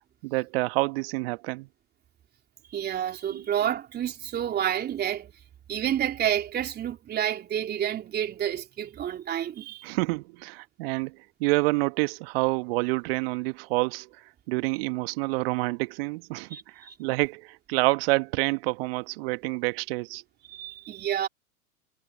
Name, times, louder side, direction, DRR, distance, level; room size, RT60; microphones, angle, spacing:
voice 1, 0.2-1.7 3.3-3.4 9.8-11.1 11.4-14.1 14.5-20.2, right 25 dB, 40° right, 1.7 m, -28 dB
voice 2, 2.7-5.3 5.7-9.8 16.5-17.1 20.5-21.3, right 10 dB, 20° right, 3.2 m, -29 dB
figure-of-eight pair, 110°, 45 cm